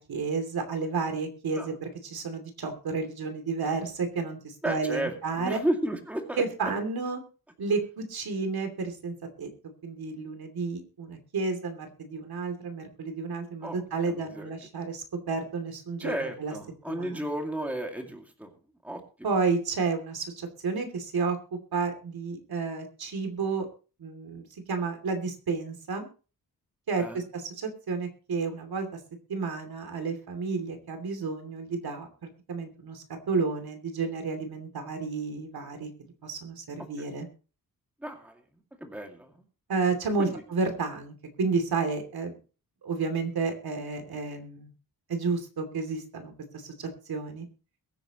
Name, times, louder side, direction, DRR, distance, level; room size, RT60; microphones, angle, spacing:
voice 1, 0.0-5.6 6.4-7.2 7.6-9.5 9.8-16.5 16.9-17.3 19.2-21.4 21.7-23.7 24.0-26.1 26.9-29.0 29.3-35.9 36.2-37.3 39.7-42.4 42.8-44.7 45.1-47.4, right 4 dB, 85° right, 7 dB, 2.9 m, -31 dB
voice 2, 4.6-6.7 13.6-13.8 14.1-14.5 16.0-18.5 18.8-19.0 26.9-27.2 37.0-37.1 38.0-38.4 38.8-39.3 40.2-40.4, right 1 dB, 5° right, 3 dB, 2.3 m, -33 dB
22.0 x 9.1 x 3.0 m, 0.35 s
wide cardioid pair, 170°, 36 cm